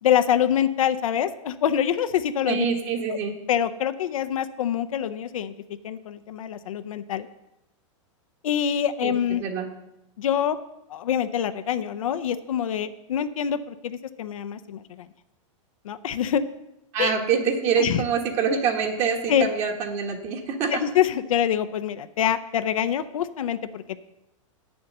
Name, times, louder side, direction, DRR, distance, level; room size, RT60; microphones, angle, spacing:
voice 1, 0.0-2.7 3.1-3.2 3.5-5.5 5.8-7.3 8.4-9.4 10.2-10.6 10.9-15.1 15.8-16.4 17.0-17.1 17.8-18.0 19.3-19.5 20.7-24.0, left 9 dB, 90° left, 10 dB, 0.6 m, -25 dB
voice 2, 2.4-3.3 9.0-9.7 16.9-20.8, right 6 dB, 40° right, 3 dB, 1.5 m, -25 dB
8.4 x 7.0 x 6.5 m, 0.90 s
hypercardioid pair, 130°, 17 cm